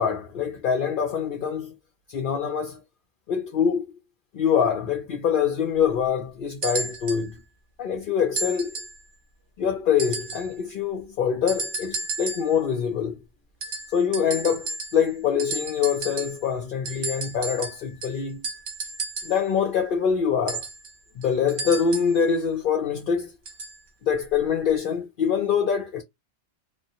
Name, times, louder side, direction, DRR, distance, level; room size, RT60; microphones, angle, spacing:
voice 1, 0.0-1.7 2.1-2.8 3.3-3.9 4.3-7.4 7.8-8.7 9.6-13.2 13.9-18.4 19.2-20.6 21.2-23.3 24.0-26.0, left 7 dB, 60° left, 0.7 m, -24 dB
sound 1, 6.6-7.3 8.4-9.0 10.0-10.5 11.5-12.6 13.6-15.1 15.4-16.5 16.9-19.4 20.5-22.2 23.5-23.8 24.7-24.8, right 3 dB, 85° right, 1.2 m, -33 dB
2.9 x 2.1 x 2.8 m
omnidirectional pair, 1.1 m